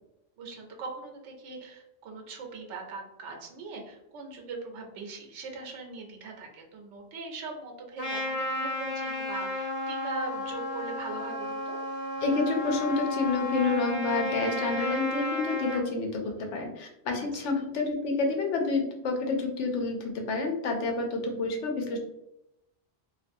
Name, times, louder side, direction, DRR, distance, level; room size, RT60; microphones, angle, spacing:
voice 1, 0.4-11.8 17.3-17.4 21.2-21.6, right 3 dB, 80° right, 2 dB, 0.9 m, -41 dB
Trumpet, 8.0-15.8, left 1 dB, 40° left, 0.6 m, -33 dB
voice 2, 12.2-22.0, left 3 dB, 80° left, 2 dB, 0.9 m, -29 dB
2.5 x 2.2 x 2.5 m, 0.86 s
omnidirectional pair, 1.2 m